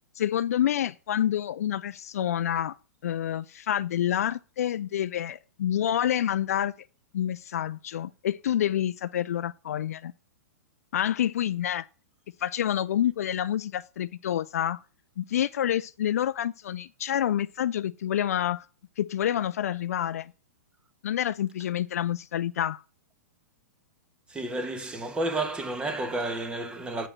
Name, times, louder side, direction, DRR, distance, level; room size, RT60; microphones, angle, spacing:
voice 1, 0.1-2.8 3.0-6.7 7.1-10.1 10.9-11.9 12.4-14.8 15.2-18.7 19.0-20.3 21.0-22.8, left 10 dB, 70° left, 0.4 m, -28 dB
voice 2, 24.3-27.1, right 2 dB, 10° right, 1.2 m, -31 dB
7.7 x 5.0 x 7.3 m
hypercardioid pair, 125°, 8 cm